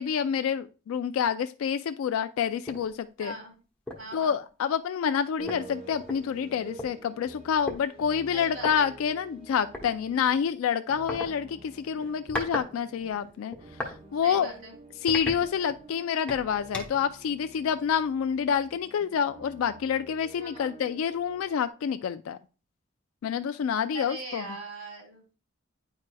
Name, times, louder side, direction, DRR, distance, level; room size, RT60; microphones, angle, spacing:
voice 1, 0.0-3.3 4.1-13.6 13.8-14.5 15.0-22.4 23.2-24.5, left 7 dB, 75° left, 10 dB, 0.3 m, -28 dB
sound 1, 2.7-2.9 3.3-3.4 3.9-4.1 5.1-5.2 5.5-6.9 7.7-7.8 8.6-8.7 9.7-9.9 11.1-11.3 12.0-12.7 13.0-14.0 14.4-14.6 15.1-15.9 16.3-17.1, left 1 dB, 5° left, 0.9 m, -36 dB
voice 2, 3.2-3.5 4.0-4.4 8.3-8.9 14.2-14.7 20.4-20.7 23.9-25.4, right 2 dB, 85° right, -1 dB, 3.1 m, -40 dB
sound 2, 5.4-21.7, right 3 dB, 25° right, 0.7 m, -50 dB
9.5 x 4.7 x 2.2 m, 0.34 s
head